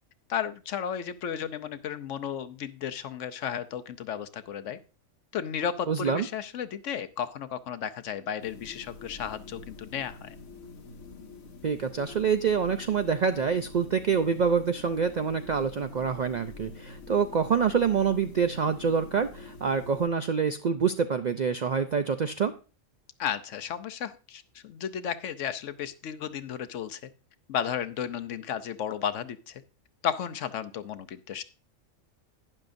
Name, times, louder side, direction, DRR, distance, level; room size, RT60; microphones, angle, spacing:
voice 1, 0.3-4.8 5.3-10.3 23.2-27.1 27.5-29.6 30.0-31.4, left 8 dB, 70° left, 12 dB, 1.0 m, -33 dB
voice 2, 5.9-6.3 11.6-22.5, right 6 dB, 70° right, 9 dB, 0.4 m, -26 dB
sound 1, 8.4-20.1, left 3 dB, 90° left, 1.6 m, -46 dB
12.0 x 9.7 x 2.6 m, 0.33 s
omnidirectional pair, 1.4 m